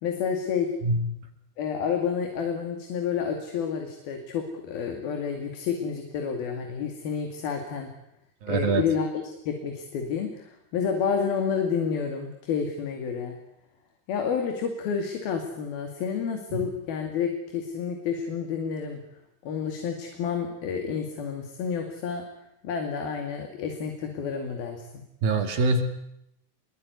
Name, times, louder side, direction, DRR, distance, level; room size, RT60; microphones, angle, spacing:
voice 1, 0.0-0.7 1.6-7.9 8.5-13.4 14.1-19.0 19.4-22.2 22.6-25.0, left 6 dB, 65° left, 4 dB, 4.2 m, -30 dB
voice 2, 8.4-8.8 16.5-16.7 25.2-25.8, right 3 dB, 60° right, 7 dB, 4.3 m, -24 dB
25.5 x 22.5 x 9.6 m, 0.81 s
omnidirectional pair, 4.8 m